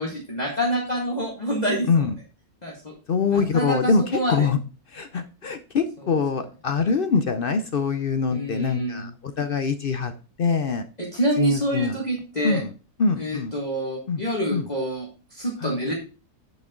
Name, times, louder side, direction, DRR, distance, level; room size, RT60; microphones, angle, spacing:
voice 1, 0.0-2.1 2.6-2.9 3.3-4.5 8.3-9.1 11.0-12.6 13.2-15.9, equal, 25° left, -3 dB, 1.9 m, -27 dB
voice 2, 3.1-4.0 4.3-4.6 4.9-10.1 10.4-10.9 11.4-12.0 12.4-12.7 13.0-13.5 14.1-14.2 14.5-14.7 15.6-15.9, left 5 dB, 55° left, 9 dB, 0.6 m, -24 dB
9.1 x 6.0 x 3.7 m, 0.34 s
omnidirectional pair, 1.7 m